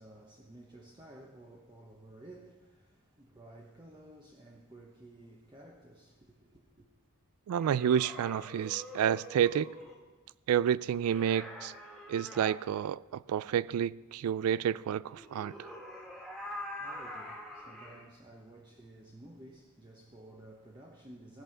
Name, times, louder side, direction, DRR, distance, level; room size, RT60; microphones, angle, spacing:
voice 1, 0.0-6.9 16.4-21.4, right 1 dB, 20° right, 1.0 m, -53 dB
voice 2, 7.5-9.7 10.5-11.7 12.1-15.7, right 9 dB, 85° right, 0.3 m, -30 dB
sound 1, 7.6-10.0 11.0-12.6 15.1-18.1, left 1 dB, ahead, 1.8 m, -45 dB
16.0 x 5.5 x 6.7 m
head